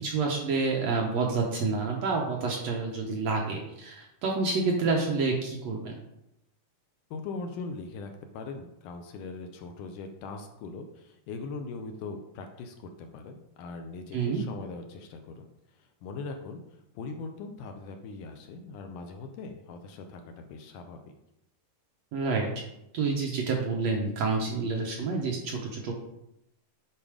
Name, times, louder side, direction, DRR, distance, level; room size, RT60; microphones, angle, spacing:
voice 1, 0.0-5.9 14.1-14.4 22.1-22.5 22.9-25.9, right 4 dB, 65° right, 0 dB, 1.8 m, -28 dB
voice 2, 7.1-21.0, left 4 dB, 75° left, 5 dB, 2.1 m, -41 dB
9.0 x 4.2 x 5.0 m, 0.84 s
omnidirectional pair, 4.0 m